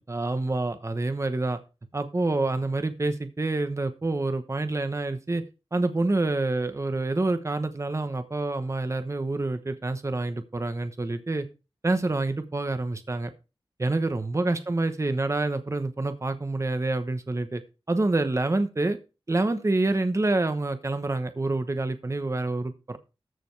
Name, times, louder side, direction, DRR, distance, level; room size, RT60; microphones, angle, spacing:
voice 1, 0.0-1.6 1.9-5.4 5.7-11.5 11.8-13.3 13.8-17.6 17.9-19.0 19.3-23.0, right 2 dB, 30° right, 9 dB, 1.0 m, -27 dB
14.0 x 5.1 x 4.6 m, 0.31 s
wide cardioid pair, 90°, 9 cm